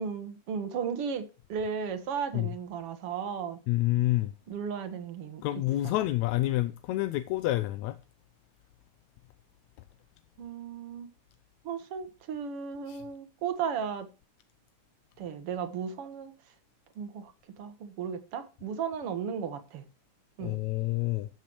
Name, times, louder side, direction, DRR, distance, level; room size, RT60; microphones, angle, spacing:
voice 1, 0.0-3.6 4.5-5.4 10.4-11.1 11.6-14.1 15.2-16.3 17.0-19.8 20.4-20.6, right 6 dB, 60° right, 1.9 m, -35 dB
voice 2, 3.7-4.3 5.4-8.0 12.9-13.0 20.4-21.3, left 16 dB, 80° left, 1.8 m, -28 dB
13.0 x 7.6 x 3.1 m
omnidirectional pair, 3.5 m